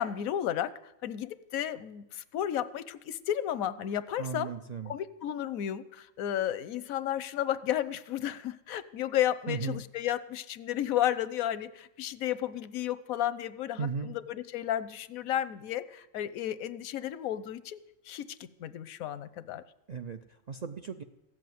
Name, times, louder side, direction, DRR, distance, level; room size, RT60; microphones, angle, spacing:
voice 1, 0.0-4.5 4.9-17.8 18.0-19.6, left 11 dB, 90° left, 15 dB, 1.1 m, -33 dB
voice 2, 4.2-4.9 9.5-9.8 13.8-14.2 19.9-21.0, right 5 dB, 55° right, 7 dB, 0.4 m, -36 dB
15.0 x 7.7 x 9.3 m, 0.92 s
omnidirectional pair, 1.4 m